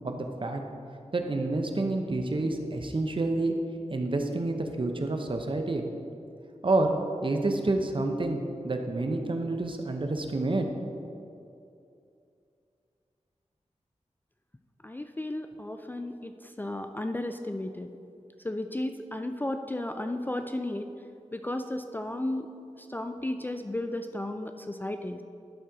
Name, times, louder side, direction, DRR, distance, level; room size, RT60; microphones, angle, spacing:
voice 1, 0.0-0.6 1.1-3.5 3.9-5.8 6.6-6.9 7.2-10.7, right 2 dB, 45° right, 4 dB, 0.7 m, -28 dB
voice 2, 14.8-16.3 16.6-17.9 18.4-20.9 21.3-22.5 22.9-25.2, left 1 dB, 15° left, 6 dB, 0.3 m, -34 dB
11.5 x 4.3 x 4.8 m, 2.6 s
wide cardioid pair, 85°, 12 cm